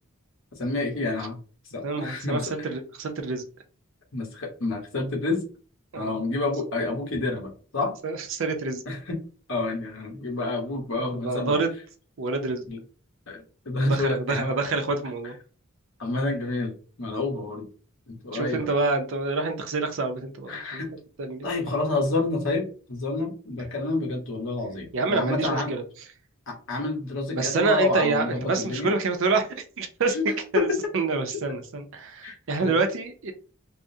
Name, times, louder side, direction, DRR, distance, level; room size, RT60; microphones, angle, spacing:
voice 1, 0.6-1.4 1.7-2.7 4.1-5.4 6.0-7.9 8.9-9.2 9.5-11.6 12.7-12.8 13.3-14.5 16.0-17.7 18.1-18.7 20.5-20.9 21.4-25.7 26.5-28.9 30.1-30.8 31.3-31.4 32.2-32.4 32.6-32.8, left 2 dB, 65° left, 1 dB, 1.0 m, -29 dB
voice 2, 1.8-3.5 5.9-6.2 8.0-8.8 11.2-11.7 12.2-12.6 13.9-15.4 18.3-20.8 21.2-21.5 24.9-25.8 27.3-30.2 30.5-33.3, right 3 dB, 60° right, 6 dB, 0.5 m, -27 dB
3.5 x 2.1 x 2.6 m, 0.38 s
head